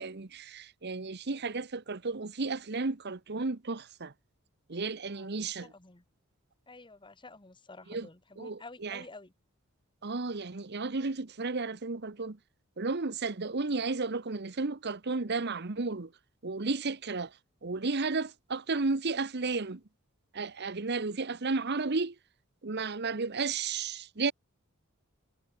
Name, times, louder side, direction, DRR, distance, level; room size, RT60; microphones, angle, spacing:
voice 1, 0.0-4.1 4.7-5.7 7.9-8.1 8.4-9.0 10.0-12.4 12.8-16.1 16.4-17.4 17.6-19.8 20.3-22.1 22.6-24.3, right 3 dB, 50° right, 1.0 m, -33 dB
voice 2, 5.1-6.0 6.7-9.3, left 3 dB, 20° left, 1.7 m, -51 dB
head